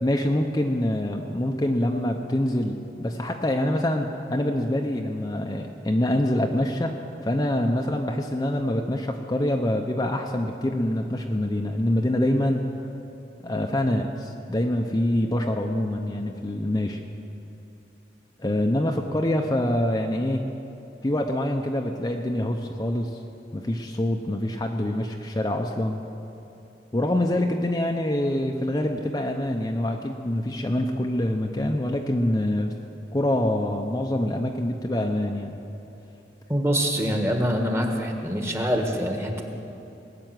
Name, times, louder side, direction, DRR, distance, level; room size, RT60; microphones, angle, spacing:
voice 1, 0.0-6.9 7.2-12.7 13.4-17.0 18.4-20.5 21.0-23.2 23.5-26.0 26.9-32.7 33.1-35.6, left 1 dB, 20° left, 2 dB, 0.6 m, -25 dB
voice 2, 36.5-39.4, equal, 15° right, 3 dB, 1.4 m, -25 dB
19.5 x 6.9 x 9.2 m, 2.9 s
head